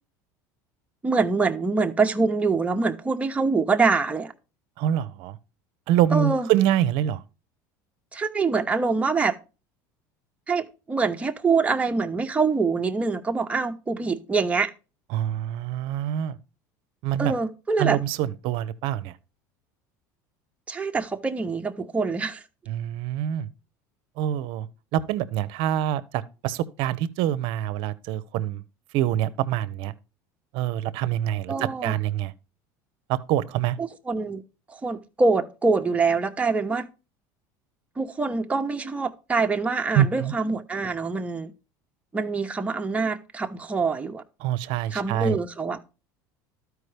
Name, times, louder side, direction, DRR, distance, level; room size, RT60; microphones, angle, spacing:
voice 1, 1.0-4.3 6.1-6.5 8.1-9.4 10.5-14.7 17.2-18.0 20.7-22.4 31.5-32.0 33.8-34.4 34.7-36.9 38.0-41.5 42.1-44.2 44.9-45.8, right 4 dB, 15° right, 0.8 m, -25 dB
voice 2, 4.8-5.4 5.9-7.2 15.1-16.4 17.0-17.3 17.8-19.1 22.7-23.5 24.2-24.7 24.9-28.6 28.9-29.9 30.5-32.3 33.1-33.8 39.9-40.3 44.4-45.4, right 11 dB, 65° right, 0.6 m, -25 dB
12.5 x 4.7 x 3.3 m
supercardioid pair, 100°, 10 cm